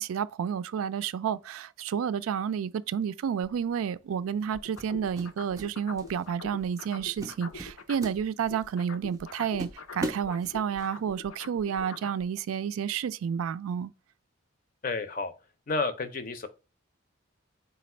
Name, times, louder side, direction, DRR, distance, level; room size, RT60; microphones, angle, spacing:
voice 1, 0.0-13.9, right 7 dB, 85° right, 0.3 m, -30 dB
sound 1, 3.4-3.7 4.8-5.7 6.0-6.3 6.7-6.9 7.2-8.7 9.1-9.2 9.6-10.9, right 1 dB, 15° right, 0.5 m, -38 dB
sound 2, 4.5-8.2 8.5-12.2, left 4 dB, 85° left, 0.6 m, -43 dB
voice 2, 14.8-15.3 15.7-16.5, left 3 dB, 40° left, 0.5 m, -30 dB
4.1 x 2.3 x 4.2 m
head